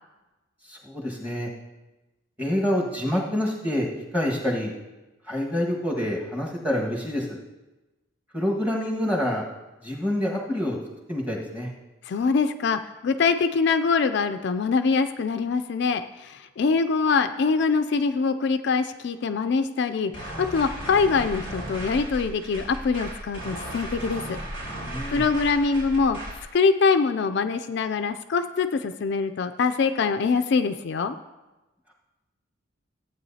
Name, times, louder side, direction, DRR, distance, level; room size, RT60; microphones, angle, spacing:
voice 1, 0.7-1.5 2.4-3.9 4.1-4.7 5.3-7.4 8.3-9.4 9.8-10.8 11.1-11.7 24.8-25.2, left 1 dB, 5° right, -2 dB, 1.6 m, -27 dB
voice 2, 12.1-24.4 25.1-26.2 26.5-31.2, left 4 dB, 55° left, 9 dB, 0.3 m, -24 dB
sound 1, 20.1-26.5, right 1 dB, 70° right, 3.4 m, -36 dB
14.5 x 8.7 x 2.8 m, 1.1 s
head